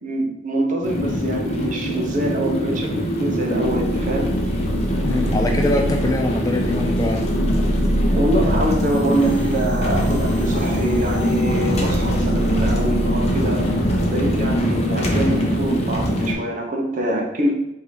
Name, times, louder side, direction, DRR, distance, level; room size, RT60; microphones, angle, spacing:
voice 1, 0.0-4.3 8.1-13.6 14.1-17.5, right 1 dB, 45° right, 0 dB, 0.8 m, -24 dB
sound 1, 0.8-16.3, equal, 35° left, 0.8 m, -23 dB
sound 2, 3.6-14.6, equal, 85° left, 1.1 m, -26 dB
voice 2, 5.0-7.3, left 2 dB, 20° left, 2 dB, 0.3 m, -23 dB
3.7 x 2.8 x 4.7 m, 0.88 s
head